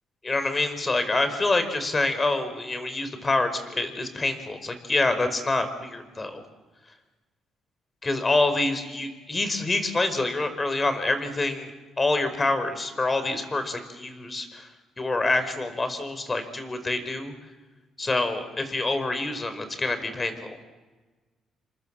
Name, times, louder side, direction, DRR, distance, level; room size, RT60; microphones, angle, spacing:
voice 1, 0.2-6.4 8.0-11.7 12.0-14.7 15.0-17.3 18.0-20.6, left 2 dB, 25° left, 10 dB, 4.9 m, -26 dB
29.5 x 26.5 x 7.6 m, 1.3 s
cardioid pair, 90°, 0 cm